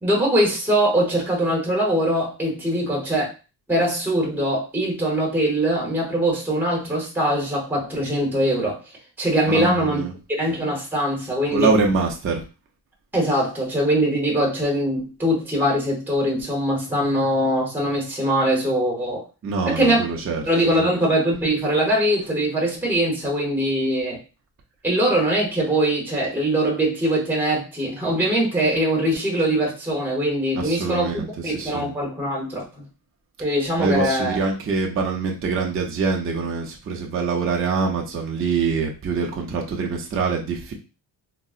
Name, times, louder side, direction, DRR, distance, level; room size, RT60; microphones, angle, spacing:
voice 1, 0.0-3.3 3.7-8.8 9.2-10.0 10.3-11.7 13.1-19.2 19.6-20.0 20.5-24.2 24.8-32.8 33.4-34.4, right 1 dB, 5° right, -2 dB, 0.8 m, -22 dB
voice 2, 9.5-10.1 11.5-12.4 19.4-20.4 20.8-20.9 30.5-31.9 33.8-40.7, right 4 dB, 30° right, 1 dB, 0.5 m, -24 dB
3.7 x 2.0 x 2.4 m, 0.32 s
wide cardioid pair, 145°, 46 cm